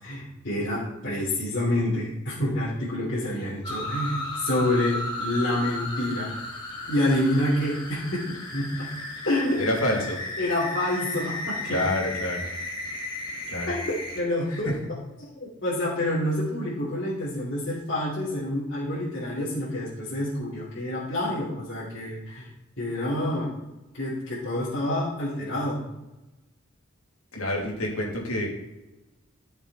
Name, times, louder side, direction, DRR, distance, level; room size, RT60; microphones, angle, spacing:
voice 1, 0.0-6.3 6.9-8.2 8.5-8.9 9.2-9.6 10.4-11.6 13.6-13.8 14.1-14.7 15.4-22.5 22.8-23.5 23.9-25.8, left 1 dB, 55° left, -9 dB, 3.4 m, -27 dB
sound 1, 3.6-14.2, left 2 dB, 20° left, 2.2 m, -34 dB
voice 2, 9.6-10.2 11.6-12.5 13.5-13.7 14.5-14.7 27.3-28.5, left 1 dB, 90° left, -2 dB, 3.2 m, -27 dB
14.5 x 6.9 x 4.3 m, 1.0 s
head